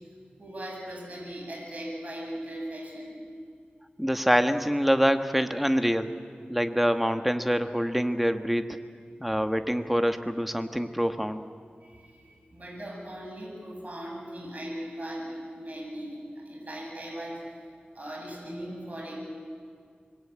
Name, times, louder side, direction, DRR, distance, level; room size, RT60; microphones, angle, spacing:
voice 1, 0.4-3.2 11.8-16.2 16.4-17.6 17.9-19.2, right 1 dB, 45° right, -2 dB, 7.8 m, -39 dB
voice 2, 4.0-6.1 6.5-8.8 9.2-11.4, equal, 5° right, 8 dB, 1.5 m, -25 dB
26.0 x 22.0 x 8.8 m, 2.1 s
wide cardioid pair, 55°, 4 cm